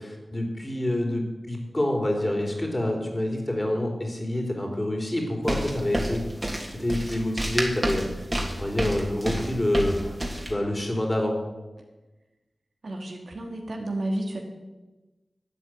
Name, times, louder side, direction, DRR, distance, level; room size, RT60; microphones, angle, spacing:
voice 1, 0.0-6.2 6.7-8.2 8.6-10.2 10.5-11.4, left 1 dB, 25° left, 2 dB, 3.9 m, -27 dB
sound 1, 5.5-10.5, right 1 dB, 25° right, 3.2 m, -29 dB
voice 2, 12.8-14.4, right 1 dB, 70° right, 2 dB, 2.8 m, -31 dB
12.5 x 8.7 x 9.4 m, 1.1 s
wide cardioid pair, 65°, 0 cm